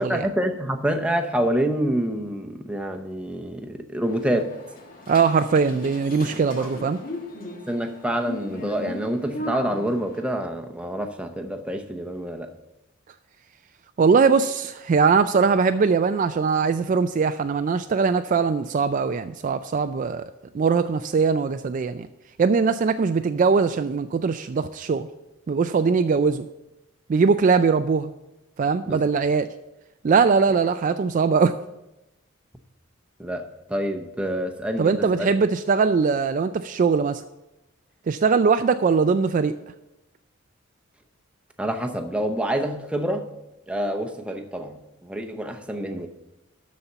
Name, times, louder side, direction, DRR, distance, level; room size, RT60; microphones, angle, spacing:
voice 1, 0.0-4.5 6.6-6.7 7.7-12.5 28.9-29.0 33.2-33.4 33.7-34.9 35.1-35.3 41.6-43.3 43.7-44.8 45.0-46.1, right 1 dB, 5° right, 4 dB, 0.8 m, -27 dB
This Lift Is Going Down, 4.1-10.2, left 1 dB, 45° left, 1.5 m, -38 dB
voice 2, 5.1-7.0 14.0-20.3 20.5-22.1 22.4-25.1 25.5-26.5 27.1-28.1 28.6-29.5 30.0-31.5 34.8-37.2 38.1-39.5, right 5 dB, 40° right, 10 dB, 0.3 m, -21 dB
12.5 x 4.2 x 6.8 m, 0.94 s
head